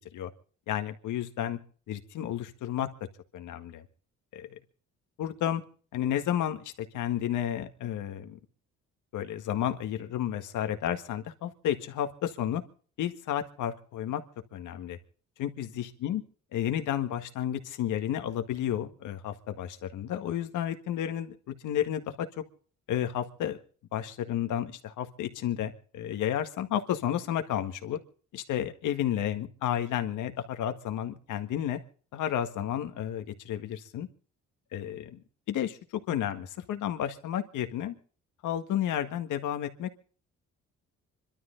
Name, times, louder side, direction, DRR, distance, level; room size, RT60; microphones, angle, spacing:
voice 1, 0.7-1.6 1.9-2.9 3.3-3.8 4.3-4.6 5.2-5.6 5.9-8.4 9.1-12.6 13.0-14.2 14.5-15.0 15.4-16.2 16.5-22.4 22.9-23.6 23.9-28.0 28.3-31.8 32.1-34.1 34.7-35.2 35.5-35.8 36.1-37.9 38.4-39.9, left 10 dB, 85° left, 7 dB, 1.7 m, -32 dB
26.0 x 12.5 x 3.9 m, 0.42 s
cardioid pair, 90°, 30 cm